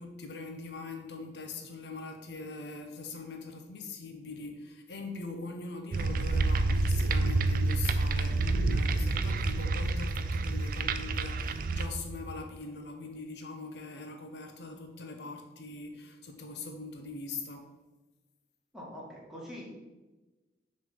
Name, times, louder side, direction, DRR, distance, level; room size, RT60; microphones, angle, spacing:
voice 1, 0.0-17.7, left 3 dB, 70° left, 4 dB, 0.8 m, -42 dB
sound 1, 5.9-12.4, right 3 dB, 50° right, 0.4 m, -28 dB
voice 2, 18.7-19.6, equal, 5° right, -5 dB, 1.7 m, -44 dB
6.4 x 3.3 x 5.7 m, 1.1 s
head